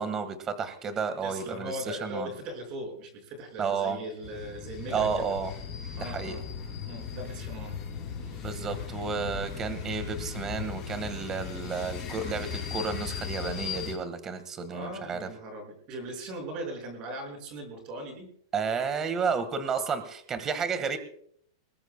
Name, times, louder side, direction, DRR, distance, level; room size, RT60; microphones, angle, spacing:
voice 1, 0.0-2.3 3.6-4.0 4.9-5.5 6.0-6.4 8.4-15.3 18.5-21.0, right 5 dB, 20° right, 10 dB, 1.6 m, -31 dB
voice 2, 1.2-5.3 6.0-6.5 6.9-7.8 8.2-8.6 14.7-18.3, right 1 dB, 35° right, 3 dB, 5.8 m, -39 dB
sound 1, 4.2-13.9, left 7 dB, 25° left, 4.8 m, -37 dB
21.5 x 20.5 x 2.2 m, 0.62 s
supercardioid pair, 155°, 2 cm